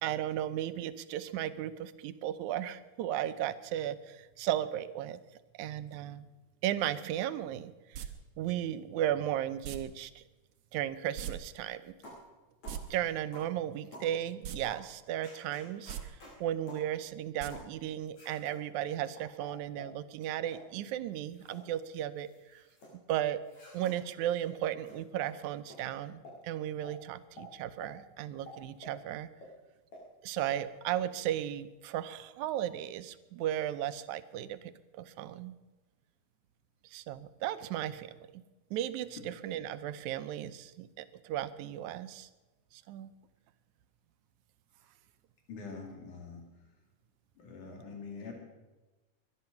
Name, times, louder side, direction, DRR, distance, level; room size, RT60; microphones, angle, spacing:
voice 1, 0.0-5.2 5.6-6.3 6.6-8.1 8.4-10.2 10.7-11.9 12.9-22.6 23.1-23.4 23.7-29.3 30.2-35.6 36.8-38.4 38.7-42.3 42.7-43.1, right 11 dB, 80° right, 12 dB, 2.1 m, -35 dB
sound 1, 7.9-8.1 9.6-9.8 11.2-11.3 11.6-11.7 12.5-12.8 14.4-14.6 15.0-15.1 15.8-16.0 17.4-17.5 17.8-17.9, right 9 dB, 65° right, 1.8 m, -38 dB
sound 2, 12.0-12.3 12.6-12.8 13.3-13.5 13.9-14.1 14.6-14.8 15.2-16.3 16.7-16.9 17.5-17.7 18.1-18.6 19.2-19.9 20.4-20.7 21.1-21.6 21.9-22.9 23.4-23.9 24.4-24.5 24.8-25.0 25.2-25.3 25.7-25.8 26.2-26.4 26.8-26.9 27.4-27.5 27.8-27.9 28.5-29.0 29.4-29.5 29.9-30.0 30.4-30.5, left 1 dB, 65° left, 7.2 m, -50 dB
voice 2, 45.5-46.5 47.4-48.3, left 4 dB, 90° left, 2 dB, 3.7 m, -44 dB
22.0 x 10.5 x 5.8 m, 1.1 s
omnidirectional pair, 3.4 m